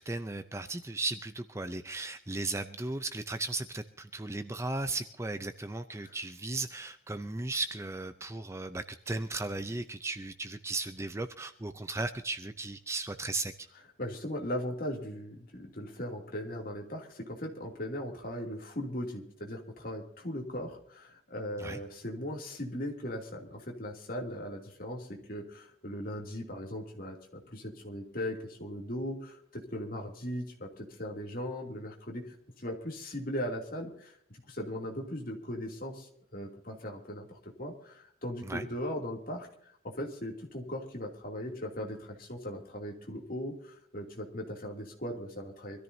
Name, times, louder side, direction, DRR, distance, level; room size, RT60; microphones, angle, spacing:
voice 1, 0.0-13.5 21.6-21.8 38.4-38.7, right 2 dB, 15° right, 9 dB, 0.5 m, -36 dB
voice 2, 14.0-45.8, equal, 45° left, 1 dB, 2.7 m, -38 dB
24.5 x 13.5 x 2.7 m, 0.67 s
head